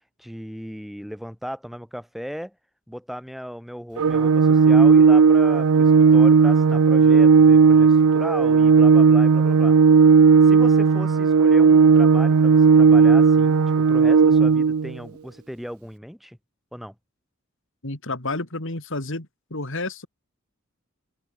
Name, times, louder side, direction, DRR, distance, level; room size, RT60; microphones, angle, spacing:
voice 1, 0.2-2.5 2.9-9.8 10.4-16.4 16.7-16.9, equal, ahead, 5.5 m, -36 dB
Organ, 4.0-14.9, right 5 dB, 80° right, 0.5 m, -15 dB
voice 2, 17.8-20.1, left 2 dB, 60° left, 3.6 m, -30 dB
head